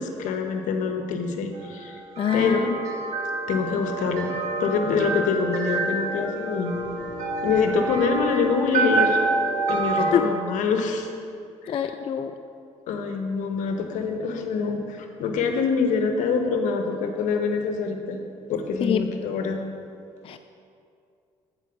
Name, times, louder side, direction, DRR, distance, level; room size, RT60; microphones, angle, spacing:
voice 1, 0.0-2.0 2.3-2.7 3.5-4.3 4.6-6.8 7.4-9.2 9.7-11.1 11.6-11.9 12.9-18.2 18.5-19.6, left 5 dB, 80° left, 5 dB, 0.9 m, -25 dB
sound 1, 1.5-10.1, right 3 dB, 65° right, 1.8 m, -27 dB
voice 2, 2.2-2.8 10.1-10.3 11.7-12.4 18.8-19.1 20.2-20.4, left 8 dB, 45° left, 8 dB, 0.4 m, -25 dB
8.3 x 4.6 x 6.4 m, 2.4 s
cardioid pair, 80°, 13 cm